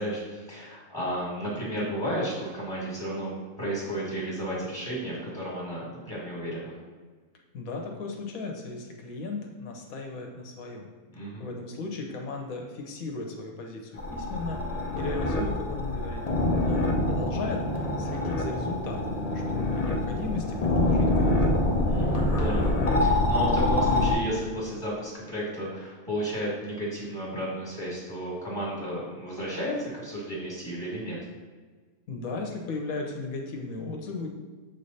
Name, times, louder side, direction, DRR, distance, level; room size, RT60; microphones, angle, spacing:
voice 1, 0.0-3.3 3.6-6.7 11.1-11.5 21.9-31.2, equal, 15° left, -8 dB, 1.7 m, -33 dB
voice 2, 7.5-10.9 11.4-14.6 14.9-17.7 18.0-19.2 19.5-21.6 32.1-34.3, left 3 dB, 75° left, 2 dB, 1.3 m, -36 dB
sound 1, 14.0-24.1, left 2 dB, 40° left, 0.5 m, -25 dB
7.3 x 3.3 x 4.1 m, 1.4 s
omnidirectional pair, 1.6 m